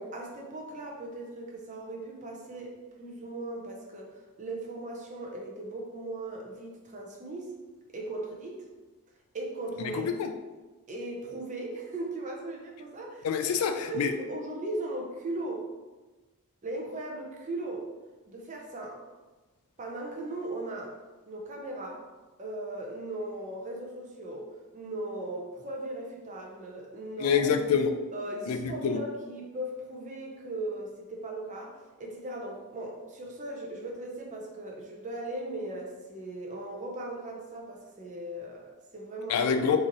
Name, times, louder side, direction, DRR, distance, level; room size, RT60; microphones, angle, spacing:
voice 1, 0.1-7.5 7.9-8.6 9.3-10.1 10.9-13.3 13.8-15.6 16.6-17.9 18.3-19.0 19.8-20.9 21.3-22.0 22.4-24.5 24.7-27.6 28.1-31.7 32.0-39.5, right 1 dB, 35° right, -1 dB, 0.6 m, -38 dB
voice 2, 9.8-10.3 13.2-14.1 27.2-27.9 28.5-29.0 39.3-39.8, left 6 dB, 75° left, 7 dB, 0.3 m, -26 dB
3.0 x 2.7 x 3.8 m, 1.2 s
head